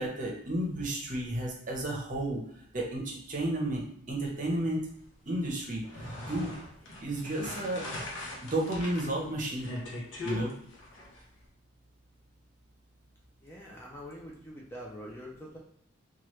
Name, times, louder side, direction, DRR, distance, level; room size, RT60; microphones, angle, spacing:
voice 1, 0.0-2.4 2.7-4.8 5.3-6.5 7.0-7.8 8.4-9.7 10.2-10.5, right 1 dB, 40° right, -1 dB, 0.7 m, -32 dB
sound 1, 5.7-11.2, left 2 dB, 70° left, 0.7 m, -41 dB
voice 2, 13.4-15.6, equal, 10° left, -3 dB, 0.4 m, -44 dB
3.0 x 2.3 x 3.0 m, 0.67 s
head